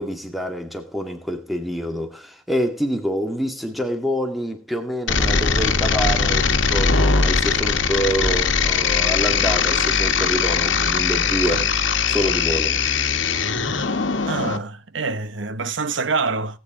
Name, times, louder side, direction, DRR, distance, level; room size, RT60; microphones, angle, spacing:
voice 1, 0.0-11.7 12.1-12.8, equal, ahead, 2.0 m, -26 dB
sound 1, 5.1-14.6, left 5 dB, 70° left, 1.4 m, -20 dB
voice 2, 14.2-16.6, right 4 dB, 75° right, 1.0 m, -26 dB
18.5 x 9.0 x 3.8 m
head